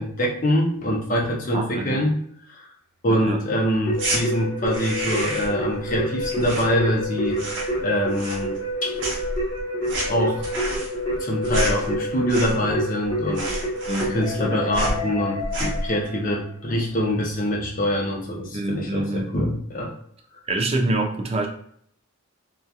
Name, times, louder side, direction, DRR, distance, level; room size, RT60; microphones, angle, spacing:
voice 1, 0.0-2.2 2.5-2.6 3.0-7.4 7.8-8.9 10.1-10.4 11.2-13.6 14.1-19.9, equal, 40° left, -2 dB, 0.6 m, -24 dB
voice 2, 1.5-2.0 3.1-3.4 13.9-14.2 18.5-19.3 20.5-21.5, right 2 dB, 30° right, 3 dB, 0.3 m, -26 dB
Keyboard (musical), 3.9-16.3, equal, 20° left, 1.0 m, -28 dB
sound 1, 3.9-4.2 4.6-5.6 5.9-7.1 7.3-7.8 8.1-8.7 9.0-12.8 13.0-13.1 13.3-14.4 14.7-15.0 15.4-15.9, right 1 dB, 55° right, 0.7 m, -29 dB
2.7 x 2.3 x 2.3 m, 0.64 s
head